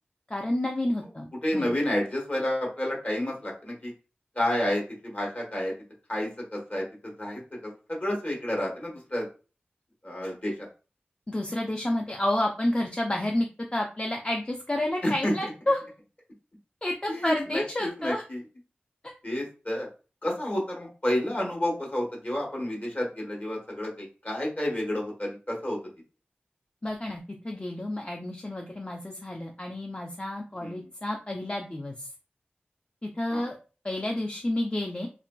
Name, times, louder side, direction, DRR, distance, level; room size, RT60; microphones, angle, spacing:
voice 1, 0.3-1.3 1.5-1.7 11.3-13.5 13.7-15.8 16.8-18.2 26.8-32.1 33.0-33.6 33.8-35.1, left 1 dB, 30° left, 1 dB, 0.4 m, -30 dB
voice 2, 1.4-3.9 4.3-5.7 6.1-9.3 10.0-10.7 15.0-15.5 17.1-18.4 19.2-19.9 20.2-25.8 30.6-30.8 33.3-33.5, left 1 dB, 45° left, -2 dB, 1.1 m, -30 dB
2.9 x 2.4 x 2.2 m, 0.35 s
wide cardioid pair, 45°, 4 cm